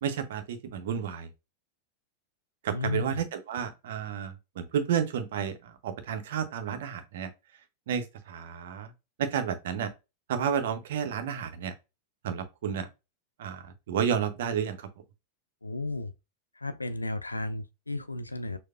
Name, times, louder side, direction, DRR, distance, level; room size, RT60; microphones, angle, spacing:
voice 1, 0.0-1.3 2.6-7.3 7.9-8.9 9.2-9.9 10.3-11.7 12.2-12.9 13.4-14.9, right 8 dB, 55° right, 0.7 m, -31 dB
voice 2, 2.7-3.2 15.6-16.1 16.6-18.6, left 2 dB, 80° left, 0.4 m, -33 dB
6.4 x 2.1 x 2.4 m
figure-of-eight pair, 90°, 0 cm